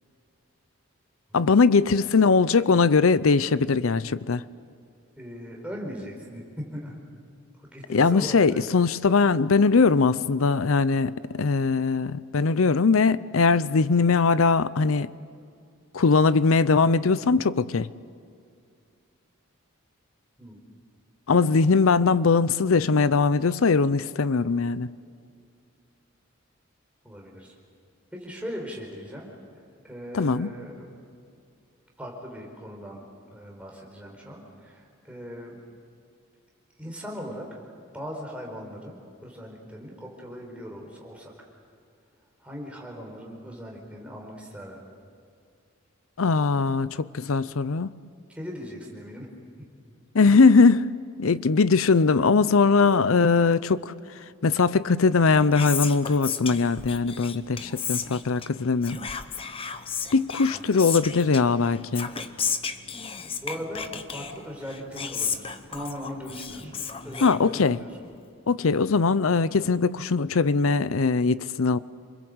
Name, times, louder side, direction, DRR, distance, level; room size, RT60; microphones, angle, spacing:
voice 1, 1.3-4.4 7.9-15.1 15.9-17.9 21.3-24.9 30.1-30.5 46.2-47.9 50.1-50.9 51.2-53.9 54.4-59.0 60.1-62.1 67.2-67.8 68.5-71.8, left 4 dB, 75° left, 0.6 m, -21 dB
voice 2, 5.2-7.0 7.6-8.6 20.4-20.6 27.0-27.5 28.1-29.3 29.8-30.9 32.0-33.0 33.3-35.6 36.8-37.6 37.9-41.5 42.4-44.8 48.3-49.3 49.6-49.7 60.5-60.6 63.2-68.1, equal, 5° right, 4.5 m, -39 dB
Whispering, 55.1-68.0, left 6 dB, 25° left, 0.9 m, -34 dB
28.0 x 21.5 x 8.0 m
head